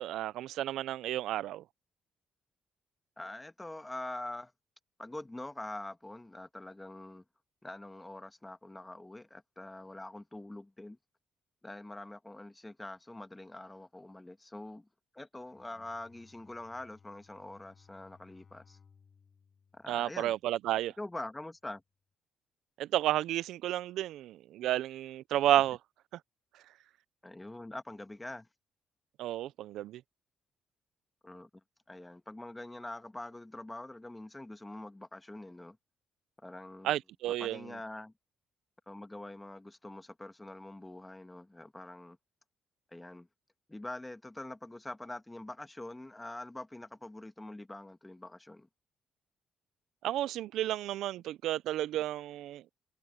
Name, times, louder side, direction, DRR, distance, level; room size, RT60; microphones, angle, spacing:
voice 1, 0.0-1.6 19.9-20.9 22.8-25.8 29.2-30.0 36.8-37.6 50.0-52.6, right 13 dB, 85° right, 0.4 m, -31 dB
voice 2, 3.2-4.5 5.0-7.2 7.6-11.0 11.6-14.9 15.1-18.8 19.7-20.3 21.0-21.8 27.2-28.5 31.2-31.5 31.9-35.8 36.4-37.0 37.4-38.1 38.9-42.2 42.9-43.3 43.7-48.7, left 1 dB, 15° left, 1.5 m, -44 dB
Bowed string instrument, 15.5-20.7, left 6 dB, 45° left, 5.4 m, -63 dB
cardioid pair, 90°, 0 cm